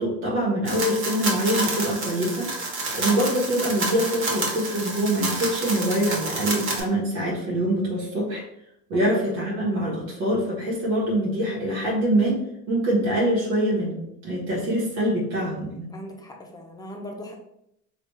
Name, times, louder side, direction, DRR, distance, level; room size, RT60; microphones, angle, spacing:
voice 1, 0.0-2.5 2.9-8.4 8.9-15.9, right 1 dB, 85° right, -5 dB, 1.1 m, -24 dB
sound 1, 0.7-6.8, right 2 dB, 35° right, 1.1 m, -29 dB
voice 2, 15.9-17.4, equal, 10° left, 1 dB, 0.6 m, -39 dB
3.3 x 2.4 x 3.0 m, 0.79 s
supercardioid pair, 110°, 36 cm